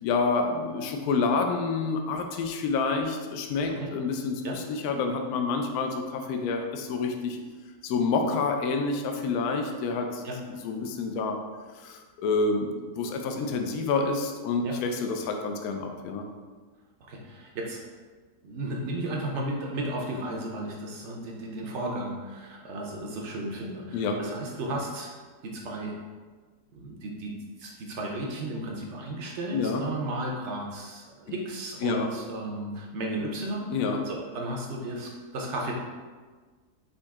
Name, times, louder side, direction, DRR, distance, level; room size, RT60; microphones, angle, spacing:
voice 1, 0.0-7.4 7.8-10.2 10.5-11.4 11.8-16.3 23.9-24.2 29.5-29.8 31.8-32.1 33.7-34.0, left 4 dB, 70° left, 4 dB, 1.0 m, -28 dB
voice 2, 17.1-17.8 18.4-25.1 25.4-26.0 26.7-27.3 27.6-35.8, right 1 dB, 65° right, -1 dB, 0.7 m, -34 dB
5.2 x 2.7 x 3.5 m, 1.4 s
omnidirectional pair, 1.8 m